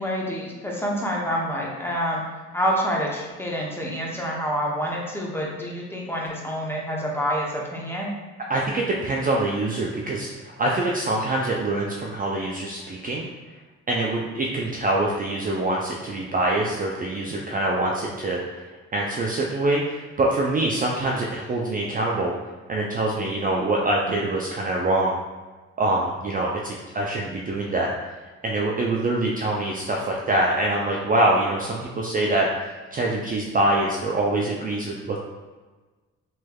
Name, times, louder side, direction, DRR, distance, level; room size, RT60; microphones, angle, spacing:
voice 1, 0.0-2.2 2.5-8.1, equal, 10° left, -3 dB, 0.7 m, -27 dB
voice 2, 8.5-13.3 13.9-18.6 18.9-22.3 22.7-25.2 25.8-27.9 28.4-35.2, right 2 dB, 30° right, -2 dB, 0.4 m, -24 dB
3.2 x 3.1 x 2.2 m, 1.3 s
cardioid pair, 90°, 30 cm